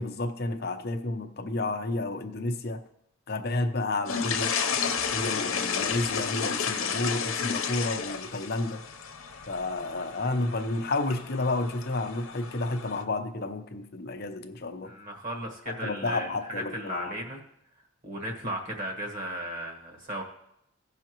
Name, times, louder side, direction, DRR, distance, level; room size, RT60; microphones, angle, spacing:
voice 1, 0.0-2.8 3.3-4.6 5.1-8.8 9.5-14.9 15.7-17.2, left 2 dB, 50° left, 7 dB, 0.7 m, -31 dB
sound 1, 4.1-13.0, left 6 dB, 80° left, 0.8 m, -32 dB
voice 2, 14.8-17.4 18.0-20.2, equal, 40° right, 2 dB, 1.4 m, -35 dB
16.0 x 5.7 x 3.0 m, 0.78 s
head